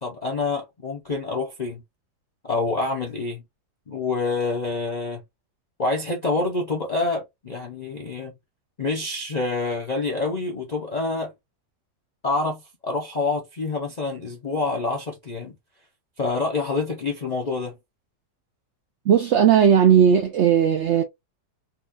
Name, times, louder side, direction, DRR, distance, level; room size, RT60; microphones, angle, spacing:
voice 1, 0.0-1.8 2.4-3.4 3.9-5.2 5.8-8.3 8.8-11.3 12.2-15.5 16.2-17.8, left 3 dB, 45° left, 0.5 m, -27 dB
voice 2, 19.1-21.0, right 8 dB, 65° right, 0.7 m, -17 dB
4.1 x 2.3 x 2.5 m
omnidirectional pair, 1.8 m